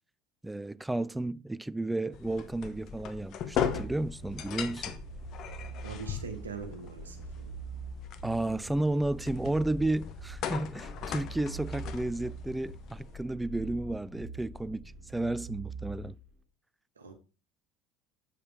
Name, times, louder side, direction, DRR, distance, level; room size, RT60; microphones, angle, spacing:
voice 1, 0.4-5.0 8.2-16.1, right 2 dB, 10° right, 0.4 m, -32 dB
sound 1, 2.1-13.2, left 8 dB, 50° left, 1.1 m, -39 dB
sound 2, 3.6-16.2, right 3 dB, 55° right, 2.9 m, -44 dB
voice 2, 5.8-7.6 17.0-17.1, right 5 dB, 85° right, 1.4 m, -42 dB
7.6 x 6.6 x 3.7 m
figure-of-eight pair, 65°, 0 cm